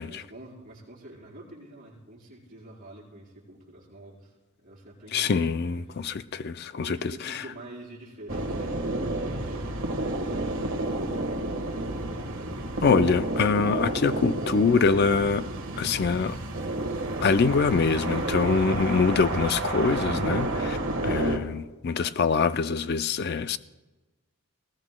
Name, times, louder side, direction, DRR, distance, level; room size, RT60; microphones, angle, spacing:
voice 1, 0.0-5.9 6.8-9.8 10.2-12.1, right 1 dB, 40° right, 4.3 m, -47 dB
voice 2, 5.1-7.4 12.8-15.5 15.8-16.4 17.2-20.8 21.0-23.6, left 4 dB, 45° left, 0.4 m, -24 dB
sound 1, 8.3-21.4, right 2 dB, 60° right, 1.5 m, -30 dB
20.0 x 18.0 x 2.2 m
head